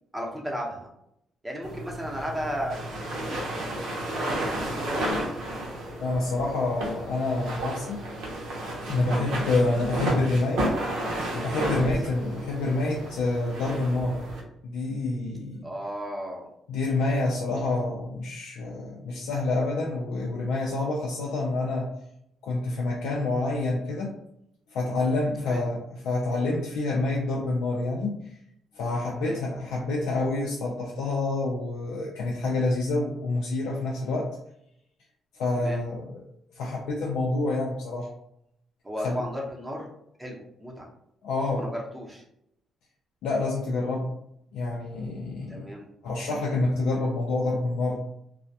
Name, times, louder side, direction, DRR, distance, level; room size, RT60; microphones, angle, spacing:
voice 1, 0.1-0.9 1.4-2.8 3.1-3.4 4.2-5.1 9.2-9.4 11.7-11.9 15.6-16.5 25.4-25.7 29.2-29.4 35.6-35.8 38.8-39.9 40.2-40.9 41.5-42.2 45.5-45.9, equal, 10° right, -2 dB, 0.7 m, -35 dB
sound 1, 1.6-14.4, right 1 dB, 85° right, 0.7 m, -32 dB
voice 2, 6.0-8.0 8.9-10.7 11.3-14.2 14.6-15.7 16.7-21.9 22.4-24.1 24.7-28.2 28.7-34.3 35.3-36.2 36.6-38.1 39.0-39.2 41.2-41.7 43.2-44.1 44.5-45.7 46.0-48.0, left 2 dB, 85° left, -3 dB, 0.4 m, -27 dB
2.2 x 2.1 x 2.6 m, 0.75 s
cardioid pair, 90°, 0 cm